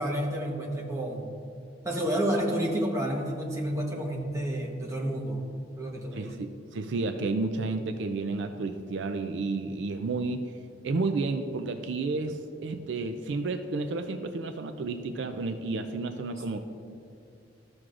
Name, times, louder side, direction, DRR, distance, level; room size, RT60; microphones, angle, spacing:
voice 1, 0.0-1.3 1.8-5.4 5.8-6.4 16.5-16.6, right 1 dB, 15° right, -2 dB, 1.0 m, -30 dB
voice 2, 6.1-10.5 10.8-16.6, right 3 dB, 65° right, 8 dB, 0.4 m, -31 dB
13.5 x 6.1 x 2.5 m, 2.5 s
head